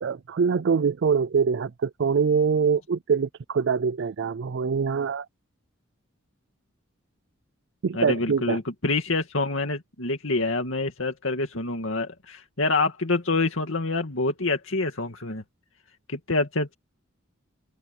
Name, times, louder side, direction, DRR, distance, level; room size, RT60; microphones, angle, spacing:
voice 1, 0.0-5.3 7.8-8.6, right 6 dB, 55° right, 0.4 m, -24 dB
voice 2, 7.9-15.4 16.1-16.8, left 3 dB, 65° left, 2.4 m, -26 dB
open air
head